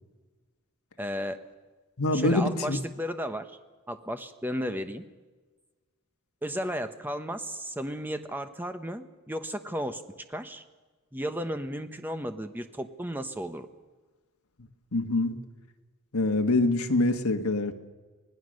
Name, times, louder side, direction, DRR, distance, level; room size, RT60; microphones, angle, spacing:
voice 1, 1.0-1.4 2.1-3.6 3.9-5.0 6.4-10.0 10.3-10.6 11.1-13.7, equal, 10° right, 8 dB, 0.9 m, -34 dB
voice 2, 2.0-2.8 14.9-15.4 16.1-17.7, left 2 dB, 75° left, 6 dB, 1.4 m, -25 dB
25.5 x 18.0 x 6.4 m, 1.3 s
head